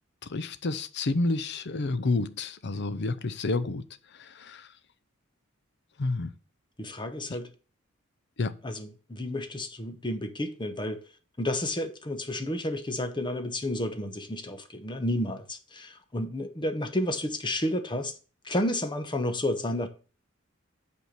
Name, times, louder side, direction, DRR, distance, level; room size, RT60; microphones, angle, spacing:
voice 1, 0.2-3.8 4.1-4.7 6.0-6.3 8.4-8.6, left 3 dB, 55° left, 0.6 m, -29 dB
voice 2, 6.8-7.5 8.6-11.0 11.4-18.1 18.4-19.9, left 1 dB, 25° left, 1.0 m, -31 dB
8.2 x 4.6 x 6.6 m
head